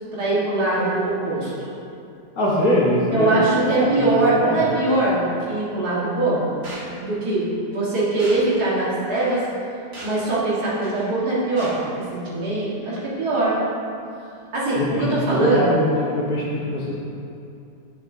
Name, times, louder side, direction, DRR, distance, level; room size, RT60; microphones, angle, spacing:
voice 1, 0.1-1.5 3.1-6.5 7.0-9.4 10.0-13.6 14.5-15.8, right 2 dB, 65° right, -8 dB, 2.0 m, -22 dB
voice 2, 2.4-4.7 14.8-17.0, left 1 dB, 60° left, -5 dB, 1.5 m, -22 dB
sound 1, 6.6-6.9 8.2-8.4 9.2-9.4 9.9-10.2 10.8-11.1 11.6-11.8, right 2 dB, 40° right, 1.7 m, -38 dB
9.0 x 5.9 x 2.6 m, 2.6 s
omnidirectional pair, 1.8 m